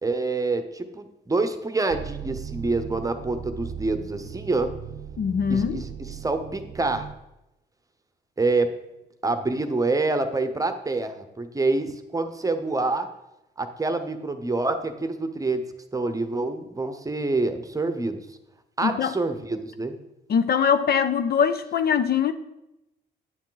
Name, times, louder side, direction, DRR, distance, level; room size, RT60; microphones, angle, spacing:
voice 1, 0.0-4.7 5.5-7.1 8.4-8.7 9.2-13.1 13.6-15.6 15.9-18.2 18.8-20.0, right 3 dB, 15° right, 8 dB, 0.9 m, -26 dB
sound 1, 1.9-7.2, right 8 dB, 60° right, 0.6 m, -38 dB
voice 2, 5.2-5.8 18.8-19.1 20.3-22.3, left 7 dB, 50° left, 11 dB, 0.6 m, -22 dB
9.7 x 7.2 x 3.9 m, 0.92 s
cardioid pair, 90°, 20 cm